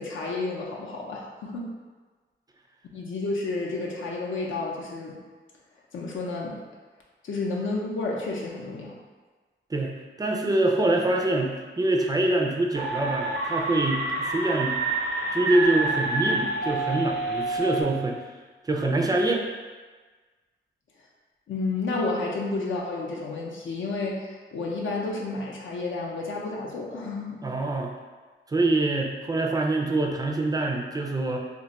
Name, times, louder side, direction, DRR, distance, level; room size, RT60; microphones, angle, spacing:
voice 1, 0.0-1.7 2.9-5.2 5.9-6.6 7.2-8.9 21.5-27.4, left 3 dB, 75° left, -3 dB, 0.5 m, -31 dB
voice 2, 10.2-14.8 15.3-18.2 18.6-19.5 27.4-27.9 28.5-31.4, right 2 dB, 20° right, 0 dB, 0.3 m, -25 dB
sound 1, 12.7-17.8, right 2 dB, 85° right, 0.7 m, -28 dB
2.5 x 2.2 x 4.0 m, 1.4 s
wide cardioid pair, 130°, 20 cm